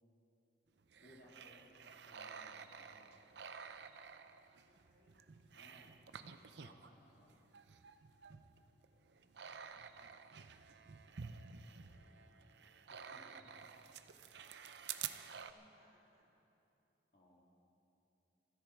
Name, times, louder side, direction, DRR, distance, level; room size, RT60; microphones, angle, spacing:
sound 1, 0.8-6.9 7.3-15.5, right 7 dB, 70° right, 0.6 m, -51 dB
voice 1, 1.0-3.3 5.5-6.0 6.6-7.3 13.1-13.6 17.1-17.4, left 1 dB, 50° left, -2 dB, 2.5 m, -64 dB
voice 2, 4.5-5.4 11.4-13.3 15.4-16.3, right 1 dB, 50° right, -2 dB, 3.3 m, -74 dB
28.5 x 10.5 x 4.5 m, 2.9 s
head